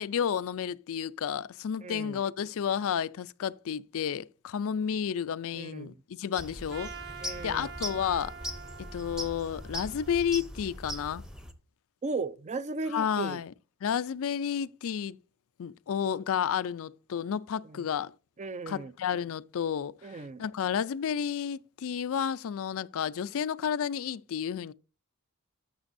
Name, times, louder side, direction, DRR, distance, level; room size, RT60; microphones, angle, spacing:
voice 1, 0.0-6.9 7.4-8.3 8.8-11.2 12.9-13.5 13.8-15.2 15.6-18.1 18.7-24.7, left 8 dB, 65° left, 0.4 m, -31 dB
voice 2, 1.8-2.2 5.5-6.0 7.2-7.7 12.0-13.4 17.6-17.8 18.4-18.9 20.0-20.4, right 3 dB, 30° right, 0.5 m, -36 dB
sound 1, 6.4-11.5, equal, 5° right, 0.8 m, -40 dB
Trumpet, 6.7-11.0, right 6 dB, 45° right, 0.9 m, -46 dB
11.0 x 7.3 x 2.6 m
head